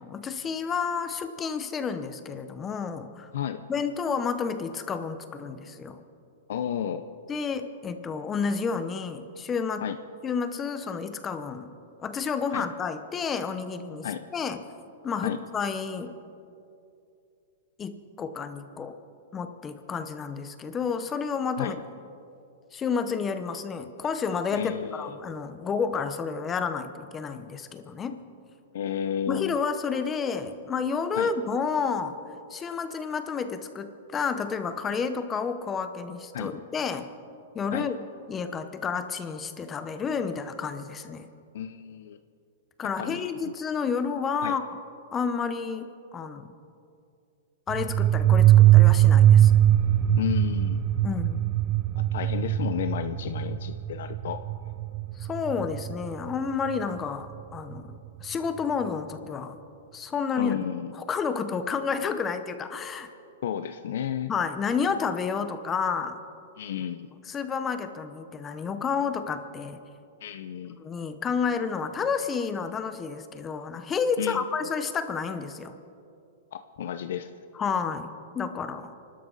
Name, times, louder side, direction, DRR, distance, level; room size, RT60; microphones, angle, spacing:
voice 1, 0.1-3.3 3.7-6.0 7.3-9.9 10.2-11.7 12.0-14.1 14.3-14.6 15.0-16.2 17.8-19.0 19.3-21.8 22.7-28.2 29.3-32.2 32.5-37.1 37.5-37.9 38.3-41.3 42.8-44.6 45.1-46.5 47.7-49.6 51.0-51.5 55.2-59.6 59.9-60.6 60.9-63.1 64.3-66.2 67.3-69.8 70.8-75.7 77.5-78.1 78.3-78.9, left 5 dB, 15° left, 9 dB, 0.9 m, -30 dB
voice 2, 6.5-7.1 9.8-10.0 12.5-12.7 14.0-14.2 15.2-15.4 21.6-21.8 24.5-25.1 28.7-29.6 31.2-31.3 36.3-36.5 37.7-37.9 41.5-42.2 43.0-43.5 44.4-44.6 50.2-50.8 51.9-54.4 60.4-60.9 63.4-64.3 66.6-67.1 70.2-70.8 74.2-74.4 76.5-77.3, left 9 dB, 65° left, 10 dB, 0.7 m, -32 dB
sound 1, 47.7-56.1, right 12 dB, 30° right, 0.6 m, -20 dB
28.5 x 12.5 x 4.1 m, 2.5 s
hypercardioid pair, 160°, 0 cm